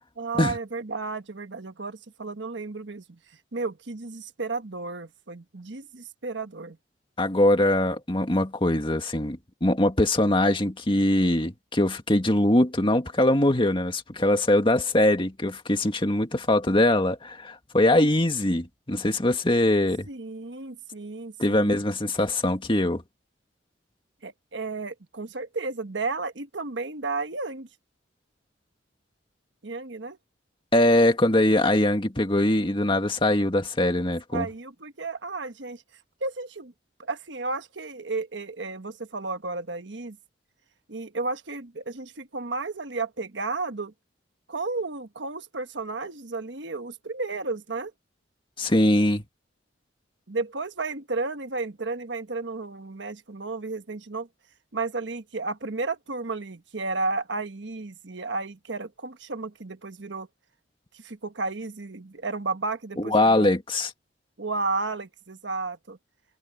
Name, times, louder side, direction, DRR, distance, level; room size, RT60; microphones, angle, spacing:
voice 1, 0.2-3.2 3.5-6.8 20.1-21.7 24.2-27.7 29.6-30.2 34.3-35.8 36.2-36.7 37.0-40.2 40.9-43.9 44.5-47.9 50.3-54.3 54.7-60.3 60.9-63.6 64.4-66.0, right 3 dB, 70° right, 1.3 m, -33 dB
voice 2, 7.2-20.1 21.4-23.0 30.7-34.5 48.6-49.2 63.0-63.9, left 1 dB, 30° left, 2.0 m, -22 dB
head